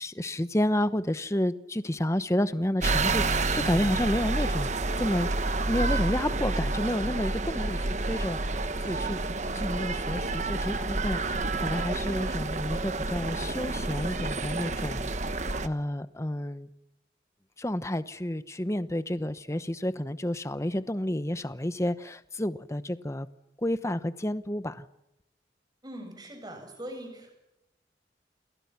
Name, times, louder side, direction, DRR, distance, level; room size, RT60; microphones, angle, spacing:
voice 1, 0.0-4.7 5.0-5.3 5.6-9.2 9.5-15.4 15.6-16.7 17.6-23.3 23.6-24.9, left 1 dB, 15° left, 0.9 m, -30 dB
sound 1, 2.8-15.7, right 2 dB, 40° right, 1.2 m, -29 dB
voice 2, 25.8-27.3, right 1 dB, 25° right, 7.8 m, -41 dB
29.5 x 27.5 x 5.9 m
head